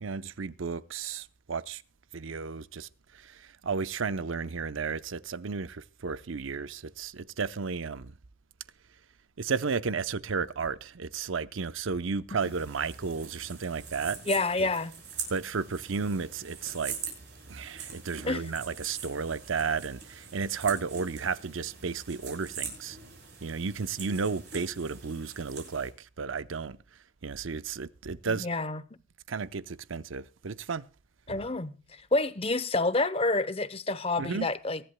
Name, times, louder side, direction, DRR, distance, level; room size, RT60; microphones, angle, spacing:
voice 1, 0.0-1.8 2.1-2.9 3.1-8.1 9.4-14.2 15.3-17.0 17.5-23.0 23.4-26.8 27.2-28.5 29.3-30.8 34.2-34.5, right 5 dB, 80° right, 0.7 m, -33 dB
sound 1, 12.4-25.9, right 6 dB, 55° right, 6.2 m, -43 dB
voice 2, 14.3-14.9 18.2-18.4 28.2-28.8 31.3-31.8 32.1-34.8, left 2 dB, 30° left, 0.7 m, -28 dB
23.5 x 11.0 x 2.2 m
head